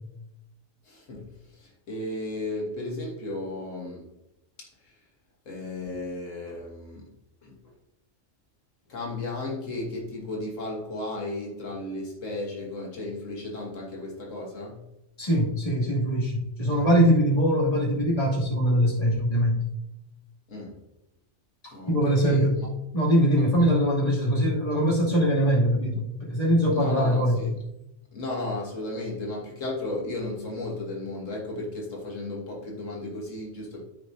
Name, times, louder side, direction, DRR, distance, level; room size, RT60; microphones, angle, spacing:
voice 1, 0.8-1.3 1.5-4.1 4.6-5.0 5.5-7.1 7.4-7.6 8.9-14.8 20.5-20.8 21.7-22.7 23.4-23.8 26.7-27.6 28.1-33.8, left 2 dB, 85° left, -2 dB, 1.8 m, -34 dB
voice 2, 15.2-19.6 21.6-22.6 22.9-27.4, equal, 30° left, -6 dB, 2.6 m, -22 dB
14.0 x 4.8 x 2.7 m, 0.88 s
omnidirectional pair, 1.3 m